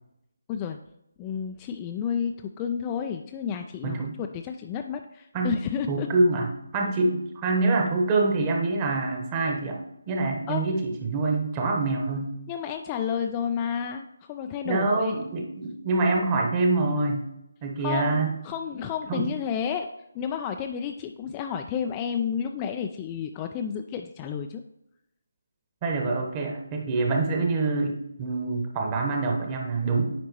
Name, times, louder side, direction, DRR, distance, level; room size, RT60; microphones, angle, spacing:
voice 1, 1.2-6.1 6.8-6.9 10.5-10.6 12.5-15.2 17.8-18.1 18.4-19.9 20.1-24.6, left 7 dB, 20° left, 5 dB, 0.3 m, -31 dB
voice 2, 3.8-4.2 5.3-5.5 5.9-6.5 6.7-9.8 10.1-12.3 14.6-17.2 17.6-18.3 19.1-19.3 25.8-30.1, right 3 dB, 20° right, 1 dB, 1.1 m, -25 dB
9.1 x 5.2 x 3.0 m, 0.84 s
figure-of-eight pair, 150°, 0 cm